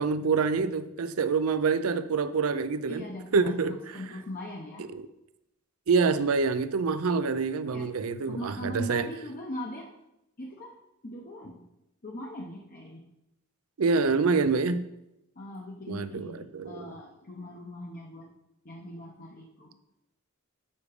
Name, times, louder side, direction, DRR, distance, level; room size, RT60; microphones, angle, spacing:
voice 1, 0.0-3.8 4.9-5.0 5.9-9.1 13.8-14.8 15.9-16.9, right 4 dB, 80° right, 0.5 m, -26 dB
voice 2, 2.9-4.9 7.7-7.9 8.3-9.9 10.4-10.8 11.0-11.6 12.0-13.0 15.4-18.3 18.6-19.8, equal, 40° left, 0.8 m, -40 dB
7.1 x 4.9 x 4.9 m
head